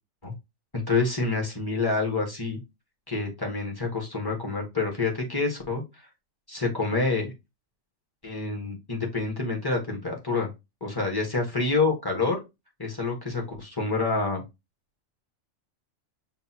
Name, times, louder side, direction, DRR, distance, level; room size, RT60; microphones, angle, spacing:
voice 1, 0.9-2.6 3.1-5.8 6.5-7.3 8.2-10.5 10.8-12.4 12.8-14.4, left 3 dB, 20° left, 0 dB, 1.2 m, -27 dB
6.0 x 2.6 x 2.8 m, 0.23 s
omnidirectional pair, 1.4 m